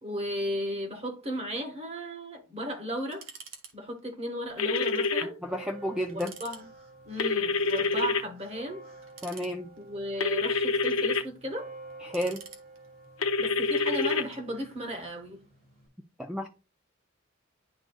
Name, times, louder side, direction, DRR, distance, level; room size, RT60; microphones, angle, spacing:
voice 1, 0.0-3.3 3.7-5.4 6.1-6.7 7.0-8.8 9.8-11.7 13.4-15.4, equal, 30° right, 1.4 m, -35 dB
sound 1, 3.1-3.7 4.0-4.1 4.7-5.2 5.5-5.6 6.1-6.6 7.6-8.1 9.0-9.9 10.5-11.2 11.9-13.0 13.8-14.4, right 6 dB, 70° right, 1.3 m, -49 dB
sound 2, 4.6-5.2 7.2-8.2 10.2-11.2 13.2-14.2, left 4 dB, 85° left, 0.8 m, -26 dB
voice 2, 5.4-6.3 9.2-9.7 12.0-12.4 16.2-16.5, equal, 5° right, 0.5 m, -31 dB
sound 3, 5.4-15.9, right 2 dB, 50° right, 2.4 m, -50 dB
11.0 x 3.8 x 2.3 m
head